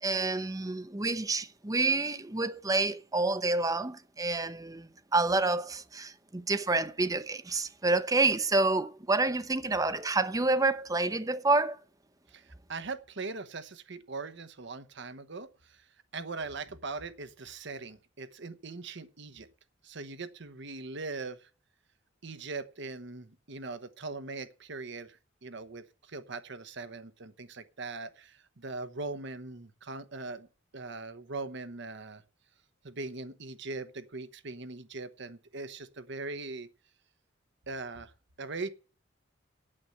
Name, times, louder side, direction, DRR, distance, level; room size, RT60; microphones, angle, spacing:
voice 1, 0.0-11.8, right 3 dB, 20° right, 0.7 m, -28 dB
voice 2, 12.3-15.8 16.1-19.5 19.8-21.5 22.2-30.5 30.7-32.2 32.8-36.7 37.7-38.1 38.4-38.7, right 3 dB, 60° right, 1.0 m, -40 dB
8.8 x 7.9 x 7.8 m
head